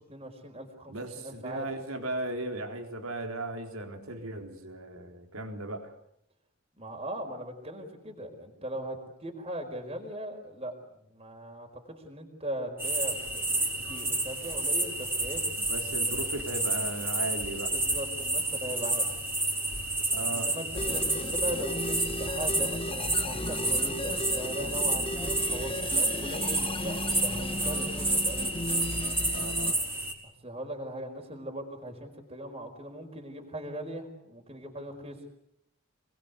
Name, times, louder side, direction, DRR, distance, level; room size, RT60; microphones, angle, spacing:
voice 1, 0.1-1.7 6.8-10.7 11.0-13.5 13.9-15.4 17.7-19.1 20.3-28.5 30.2-35.2, right 1 dB, 30° right, 2 dB, 4.8 m, -39 dB
voice 2, 0.9-6.0 15.7-17.8 20.1-20.5 29.3-29.8, right 2 dB, 85° right, 4 dB, 4.1 m, -36 dB
sound 1, 12.8-30.1, right 2 dB, 10° right, 4.7 m, -30 dB
sound 2, 20.7-29.7, left 1 dB, 25° left, 1.2 m, -35 dB
27.5 x 21.5 x 8.3 m, 0.73 s
head